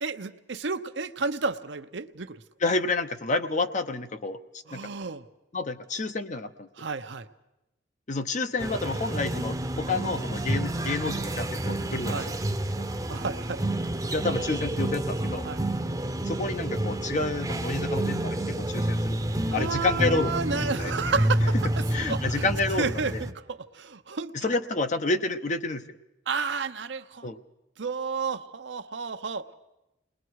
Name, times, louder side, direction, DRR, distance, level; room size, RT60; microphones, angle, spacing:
voice 1, 0.0-2.4 4.7-5.3 6.8-7.3 12.1-12.3 13.1-13.6 15.4-15.6 19.5-22.5 22.8-24.3 26.3-27.3 27.8-29.5, right 4 dB, 70° right, 9 dB, 0.8 m, -31 dB
voice 2, 2.6-4.4 4.7-4.9 5.5-6.7 8.1-12.4 12.8-12.9 14.1-15.5 16.2-19.2 19.5-20.4 20.8-20.9 21.9-23.2 24.3-25.8 27.2-27.4, left 3 dB, 40° left, 9 dB, 0.8 m, -29 dB
sound 1, 8.6-23.3, right 1 dB, 20° right, 0.8 m, -29 dB
29.0 x 20.5 x 4.7 m, 0.95 s
head